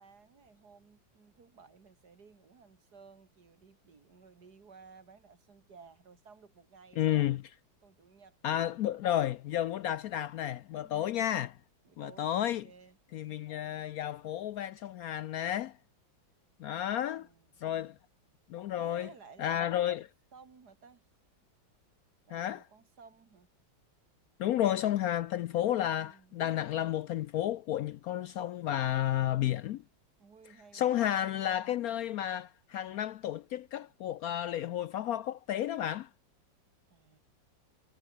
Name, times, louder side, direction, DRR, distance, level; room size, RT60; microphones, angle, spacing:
voice 1, 0.0-7.3 7.8-9.0 10.8-11.4 11.8-13.0 16.8-17.9 18.8-19.8 20.3-21.1 22.3-23.5 25.6-26.4 30.2-31.1 36.9-37.2, right 5 dB, 60° right, 2.9 m, -57 dB
voice 2, 7.0-7.4 8.4-11.5 12.0-12.6 13.1-15.7 16.6-17.3 17.6-17.9 18.5-19.1 19.4-20.0 22.3-22.6 24.4-29.8 30.7-36.1, left 11 dB, 75° left, 0.8 m, -32 dB
omnidirectional pair, 2.0 m